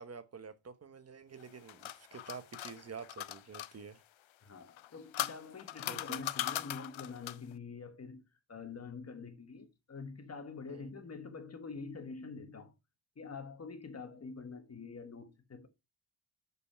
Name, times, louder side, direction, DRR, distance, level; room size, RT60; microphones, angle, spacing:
voice 1, 0.0-4.0 5.8-6.2 10.7-10.9, right 5 dB, 30° right, 0.9 m, -48 dB
sound 1, 1.4-3.7 4.7-7.5, left 13 dB, 80° left, 0.6 m, -39 dB
voice 2, 4.4-8.2 8.5-12.7 13.2-15.7, left 4 dB, 30° left, 1.3 m, -46 dB
6.8 x 5.4 x 5.6 m
wide cardioid pair, 165°, 46 cm